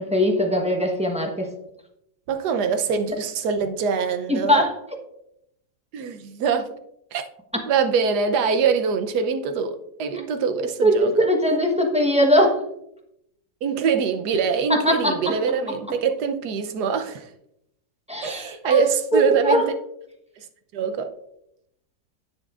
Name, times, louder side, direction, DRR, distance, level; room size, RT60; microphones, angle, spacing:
voice 1, 0.0-1.5 4.3-4.7 7.5-7.6 10.8-12.6 14.8-15.2 18.1-18.8 19.1-19.6, equal, 5° right, 0.8 m, -20 dB
voice 2, 2.3-4.6 5.9-6.7 7.1-7.2 7.7-11.1 13.6-17.3 18.2-19.7 20.4-20.5 20.7-21.1, right 6 dB, 70° right, 1.3 m, -24 dB
10.0 x 8.7 x 2.5 m
omnidirectional pair, 1.9 m